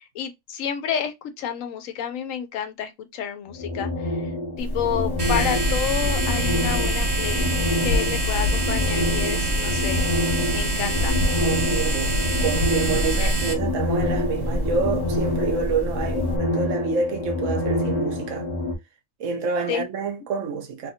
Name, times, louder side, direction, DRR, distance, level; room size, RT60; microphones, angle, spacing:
voice 1, 0.0-10.0 10.5-11.1 13.2-13.3 19.7-19.8, left 9 dB, 75° left, 1.0 m, -30 dB
sound 1, 3.5-18.8, left 1 dB, 40° left, 0.6 m, -27 dB
sound 2, 4.6-16.4, equal, 30° right, 0.5 m, -32 dB
sound 3, 5.2-13.5, right 1 dB, 55° right, 1.3 m, -25 dB
voice 2, 11.4-18.5 19.2-20.9, right 4 dB, 70° right, 1.0 m, -28 dB
2.7 x 2.5 x 2.7 m
omnidirectional pair, 1.4 m